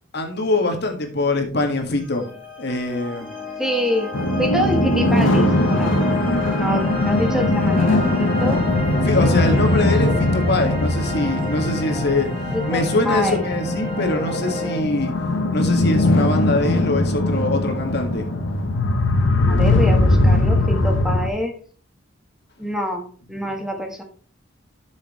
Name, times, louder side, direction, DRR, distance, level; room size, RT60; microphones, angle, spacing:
voice 1, 0.1-2.3 2.6-3.3 9.0-12.3 12.6-15.1 15.5-18.3 23.5-23.6, left 2 dB, 60° left, 3 dB, 1.9 m, -23 dB
sound 1, 1.9-14.8, left 2 dB, 25° left, 3.6 m, -31 dB
voice 2, 3.6-4.1 4.4-6.0 6.6-8.6 12.5-13.4 19.5-21.5 22.6-24.0, equal, 5° right, 3 dB, 1.3 m, -26 dB
sound 2, 4.1-21.3, left 1 dB, 85° left, 1.2 m, -20 dB
12.5 x 6.4 x 3.2 m, 0.41 s
head